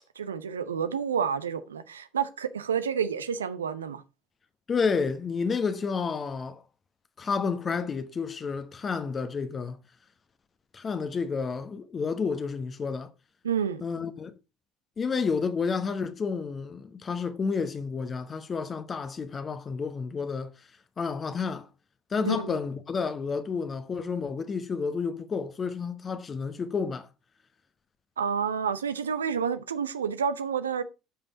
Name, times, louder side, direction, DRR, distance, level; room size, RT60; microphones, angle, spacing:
voice 1, 0.2-4.0 13.4-13.8 22.2-22.6 28.2-30.8, right 7 dB, 80° right, 0.7 m, -29 dB
voice 2, 4.7-6.6 7.2-9.8 10.7-13.1 13.8-14.3 15.0-20.5 21.0-21.7 22.1-27.1, left 5 dB, 30° left, 1.0 m, -30 dB
11.5 x 5.4 x 4.0 m
figure-of-eight pair, 60°, 0 cm